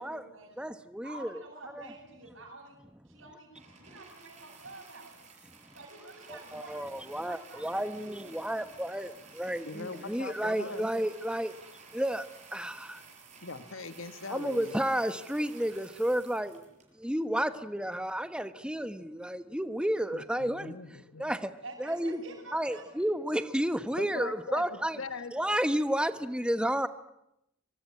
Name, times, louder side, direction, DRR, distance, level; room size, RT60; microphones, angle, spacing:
voice 1, 0.0-0.7 1.0-2.8 3.0-5.2 5.7-8.2 21.6-23.1, right 2 dB, 65° right, -6 dB, 7.6 m, -49 dB
voice 2, 0.6-1.4 1.7-1.8 6.3-11.5 11.9-13.0 14.3-16.6 17.0-20.8 21.2-21.5 21.8-22.2 22.5-25.0 25.3-26.9, equal, 5° right, 10 dB, 1.1 m, -31 dB
sound 1, 3.5-17.2 18.0-18.1, right 4 dB, 35° right, 6.9 m, -53 dB
voice 3, 9.6-10.9 13.4-14.8 20.1-21.3 24.0-25.4 25.6-25.8, left 3 dB, 70° left, 11 dB, 1.5 m, -41 dB
25.0 x 24.0 x 9.7 m, 0.84 s
head